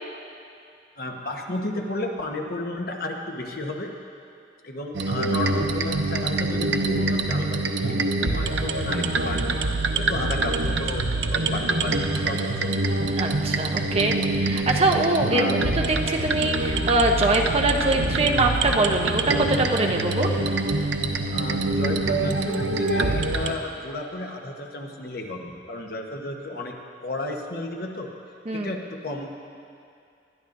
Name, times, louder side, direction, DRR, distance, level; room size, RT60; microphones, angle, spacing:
voice 1, 1.0-3.9 4.6-9.6 9.9-12.0 12.2-12.5 15.3-15.6 21.3-26.7 27.0-28.1 28.5-29.3, left 2 dB, 55° left, 2 dB, 1.1 m, -33 dB
sound 1, 4.9-23.5, right 2 dB, 85° right, 0.7 m, -25 dB
voice 2, 13.2-20.3 28.5-28.7, right 2 dB, 35° right, 2 dB, 0.9 m, -23 dB
20.5 x 12.0 x 2.7 m, 2.4 s
head